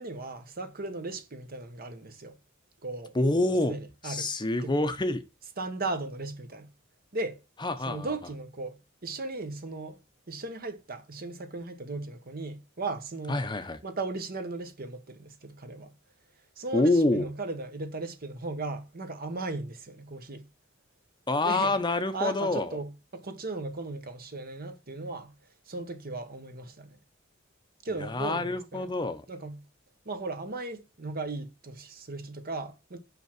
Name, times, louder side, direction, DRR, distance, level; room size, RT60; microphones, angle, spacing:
voice 1, 0.0-2.4 2.8-3.2 3.5-4.3 4.6-4.7 5.6-6.7 7.1-7.4 7.9-10.0 10.3-13.4 13.8-15.9 16.6-20.5 21.4-21.7 22.1-25.3 25.7-27.0 27.8-28.9 29.3-29.6 30.0-33.0, right 3 dB, 50° right, 1.2 m, -37 dB
voice 2, 3.1-3.7 4.0-5.2 7.6-8.1 13.3-13.8 16.7-17.3 21.3-22.8 28.0-29.2, left 2 dB, 20° left, 0.8 m, -27 dB
5.9 x 5.6 x 5.9 m
head